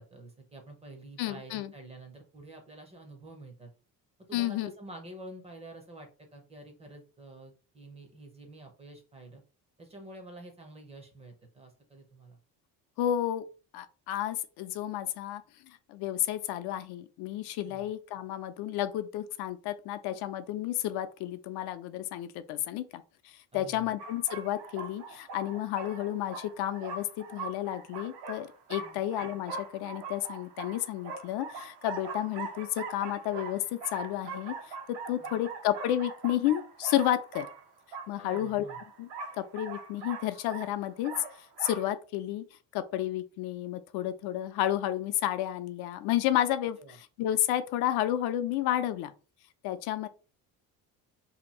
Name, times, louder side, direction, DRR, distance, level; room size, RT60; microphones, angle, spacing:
voice 1, 0.0-3.7 4.3-9.4 9.8-12.4 17.6-17.9 23.5-23.9 28.8-29.0 35.2-35.4 38.2-38.8 46.8-47.0, right 2 dB, 15° right, 0.5 m, -48 dB
voice 2, 1.2-1.7 4.3-4.7 13.0-13.4 13.7-34.5 34.9-37.5 38.1-38.7 39.0-39.1 39.4-41.1 41.6-42.5 42.7-49.1 49.6-50.1, left 12 dB, 80° left, 0.5 m, -31 dB
sound 1, 24.0-41.9, right 4 dB, 85° right, 0.8 m, -42 dB
2.8 x 2.5 x 4.2 m
cardioid pair, 175°, 38 cm